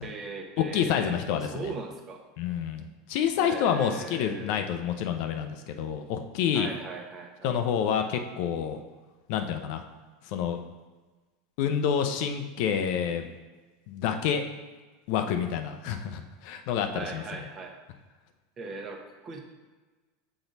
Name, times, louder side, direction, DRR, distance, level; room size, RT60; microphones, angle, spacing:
voice 1, 0.0-2.2 3.4-4.7 6.5-7.5 16.9-17.7 18.6-19.4, right 4 dB, 35° right, 3 dB, 1.0 m, -39 dB
voice 2, 0.6-1.7 2.4-6.7 7.4-8.8 9.3-9.8 10.3-10.6 11.6-13.2 13.9-14.4 15.1-17.5, left 8 dB, 60° left, 6 dB, 0.5 m, -28 dB
6.1 x 3.9 x 4.0 m, 1.3 s
hypercardioid pair, 90°, 0 cm